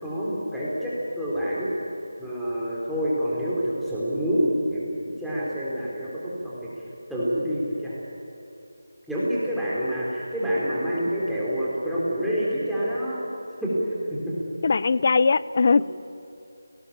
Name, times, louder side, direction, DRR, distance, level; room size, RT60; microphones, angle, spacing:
voice 1, 0.0-1.7 2.2-4.9 5.2-6.8 7.1-8.0 9.1-13.3 13.6-13.7 14.1-14.3 15.8-15.9, equal, ahead, -10 dB, 3.7 m, -27 dB
voice 2, 14.6-15.8, left 4 dB, 40° left, 18 dB, 0.5 m, -20 dB
29.5 x 18.5 x 7.3 m, 2.7 s
figure-of-eight pair, 170°, 0 cm